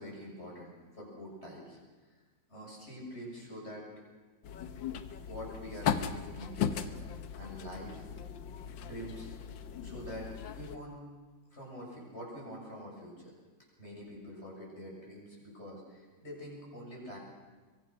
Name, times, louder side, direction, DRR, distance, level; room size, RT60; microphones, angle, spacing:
voice 1, 0.0-1.8 2.5-3.9 5.2-7.0 7.3-8.1 8.8-9.3 9.8-10.3 10.5-11.0 11.5-13.3 13.8-17.2, equal, 35° left, -3 dB, 7.6 m, -45 dB
sound 1, 4.4-10.8, left 8 dB, 75° left, 1.7 m, -37 dB
23.5 x 23.5 x 6.3 m, 1.3 s
omnidirectional pair, 2.1 m